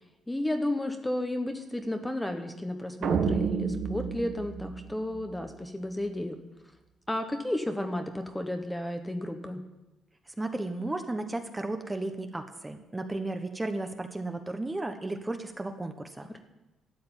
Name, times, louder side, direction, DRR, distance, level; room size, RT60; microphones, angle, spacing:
voice 1, 0.3-6.4 7.1-9.6, left 1 dB, 10° left, 6 dB, 1.1 m, -32 dB
sound 1, 3.0-5.5, right 6 dB, 65° right, 1.4 m, -30 dB
voice 2, 10.4-16.3, right 2 dB, 15° right, 6 dB, 1.2 m, -34 dB
12.5 x 7.7 x 8.9 m, 1.0 s
cardioid pair, 115°, 0 cm